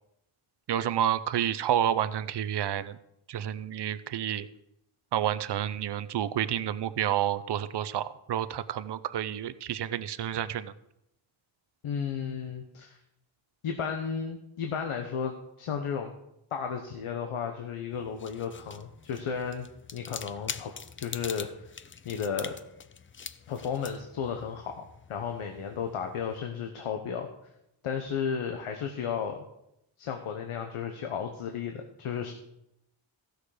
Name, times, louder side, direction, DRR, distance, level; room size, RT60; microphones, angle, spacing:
voice 1, 0.7-3.0 3.3-4.5 5.1-10.7, right 10 dB, 55° right, 14 dB, 0.6 m, -29 dB
voice 2, 11.8-13.0 13.6-16.1 16.5-19.7 19.9-21.7 22.0-22.6 23.5-27.3 27.8-29.4 30.0-32.3, left 7 dB, 85° left, 4 dB, 1.1 m, -34 dB
sound 1, 17.9-26.4, left 6 dB, 30° left, 0.3 m, -44 dB
15.0 x 6.5 x 4.9 m, 0.81 s
wide cardioid pair, 145°, 50 cm